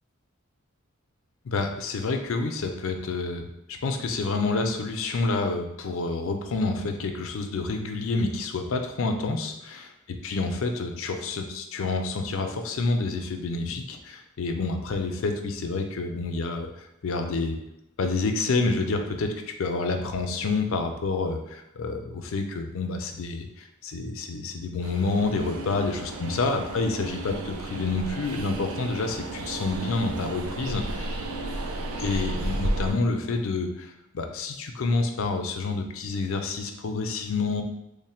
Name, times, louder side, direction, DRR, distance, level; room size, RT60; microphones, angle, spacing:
voice 1, 1.4-3.5 3.8-9.9 10.2-17.6 18.0-19.3 19.6-31.1 32.0-37.6, left 3 dB, 70° left, 5 dB, 0.4 m, -28 dB
Train, 24.8-32.9, right 1 dB, 80° right, 0.5 m, -33 dB
3.2 x 2.1 x 4.2 m, 0.86 s
head